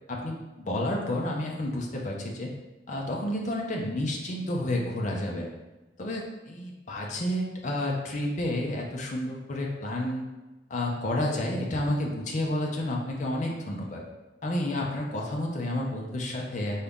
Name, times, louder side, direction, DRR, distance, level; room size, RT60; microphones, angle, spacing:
voice 1, 0.1-2.5 2.9-5.5 6.0-10.3 10.7-14.0 14.4-16.8, left 1 dB, 45° left, -1 dB, 0.6 m, -30 dB
4.6 x 2.7 x 3.5 m, 1.1 s
head